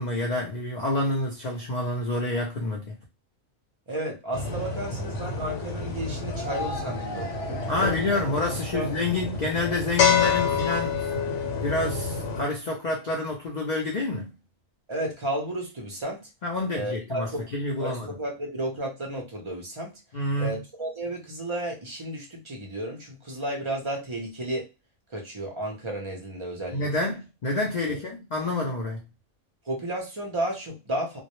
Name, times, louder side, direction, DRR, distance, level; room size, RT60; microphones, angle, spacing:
voice 1, 0.0-3.0 7.7-11.1 11.6-14.3 16.4-18.1 20.1-20.6 26.7-29.0, left 2 dB, 90° left, 0.3 m, -28 dB
voice 2, 3.9-8.0 8.7-8.9 14.9-16.3 16.7-17.5 17.8-19.9 20.4-24.7 25.1-27.1 27.8-28.0 29.6-31.2, right 1 dB, 45° right, 0.4 m, -33 dB
sound 1, 4.3-12.4, left 5 dB, 70° left, 0.9 m, -28 dB
2.2 x 2.0 x 2.9 m
omnidirectional pair, 1.4 m